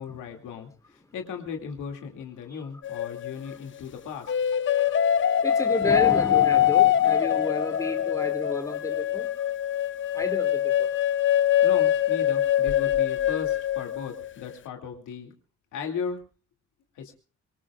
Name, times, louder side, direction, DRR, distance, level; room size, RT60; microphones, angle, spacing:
voice 1, 0.0-4.3 11.6-15.3 15.7-16.2 16.9-17.1, left 6 dB, 85° left, 3 dB, 2.6 m, -36 dB
sound 1, 2.8-3.6 4.3-14.3, left 10 dB, 40° left, 0.7 m, -23 dB
voice 2, 5.4-9.4 10.1-10.9, left 2 dB, 10° left, 6 dB, 2.7 m, -31 dB
25.0 x 19.0 x 2.4 m, 0.35 s
cardioid pair, 90°, 30 cm